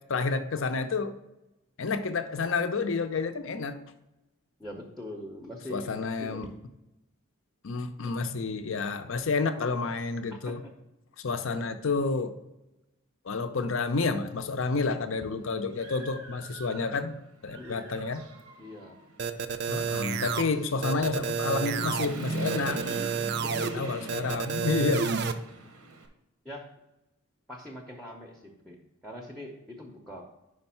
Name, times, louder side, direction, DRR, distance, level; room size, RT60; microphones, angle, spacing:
voice 1, 0.1-1.1 1.8-3.8 5.7-6.5 7.6-10.6 11.2-12.3 13.2-18.2 19.7-22.8 23.6-25.2, left 4 dB, 60° left, 9 dB, 0.5 m, -30 dB
voice 2, 4.6-5.9 6.2-6.5 10.3-10.7 17.6-17.9 18.6-19.0 23.4-24.2 26.4-26.7 27.5-30.2, left 1 dB, ahead, 1 dB, 0.6 m, -42 dB
Human voice / Motorcycle, 14.8-14.9 15.3-17.1 17.5-26.1, right 2 dB, 90° right, 1.0 m, -41 dB
sound 1, 19.2-20.4 20.8-22.1 22.5-23.7 24.1-25.3, right 6 dB, 50° right, 0.4 m, -30 dB
5.3 x 5.1 x 5.6 m, 0.95 s
head